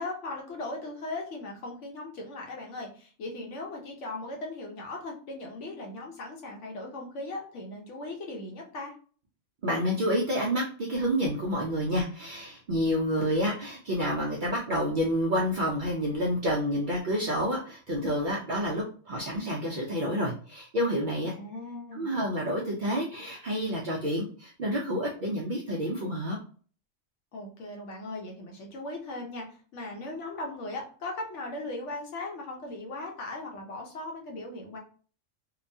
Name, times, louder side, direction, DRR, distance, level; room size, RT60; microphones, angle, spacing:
voice 1, 0.0-8.9 21.4-22.1 27.3-34.8, left 2 dB, 70° left, 1 dB, 1.0 m, -38 dB
voice 2, 9.6-21.3 21.9-26.4, equal, 60° right, -2 dB, 0.5 m, -29 dB
2.9 x 2.1 x 2.6 m, 0.42 s
omnidirectional pair, 1.3 m